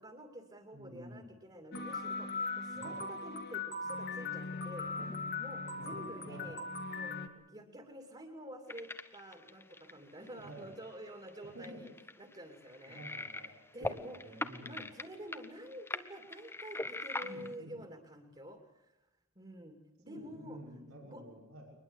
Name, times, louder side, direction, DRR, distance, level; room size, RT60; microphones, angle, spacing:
voice 1, 0.0-4.9 5.4-6.6 6.9-11.9 12.2-13.0 13.4-19.0 19.4-20.8 21.1-21.2, equal, 25° right, 4 dB, 2.6 m, -49 dB
voice 2, 0.7-1.3 2.7-3.0 5.0-5.2 5.7-6.6 10.4-10.7 11.4-11.8 12.9-14.8 17.2-17.8 20.1-21.7, equal, 85° right, 0 dB, 6.0 m, -50 dB
sound 1, 1.7-7.3, left 3 dB, 50° left, 2.2 m, -39 dB
sound 2, 8.7-10.9 11.3-11.4 11.6-13.6 13.8-17.5, left 2 dB, 10° left, 0.9 m, -41 dB
23.0 x 21.0 x 8.1 m, 0.90 s
head